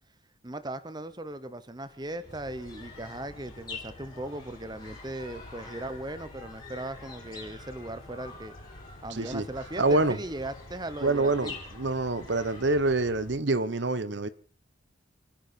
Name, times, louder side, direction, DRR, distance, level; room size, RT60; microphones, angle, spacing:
voice 1, 0.4-8.5 9.0-11.5, right 1 dB, 20° right, 1.0 m, -38 dB
sound 1, 1.8-13.3, left 3 dB, 20° left, 4.6 m, -47 dB
sound 2, 2.3-13.4, left 1 dB, 85° left, 1.8 m, -50 dB
voice 2, 9.1-9.4 9.8-10.2 11.0-14.3, right 2 dB, 65° right, 0.9 m, -26 dB
29.0 x 10.5 x 4.4 m
head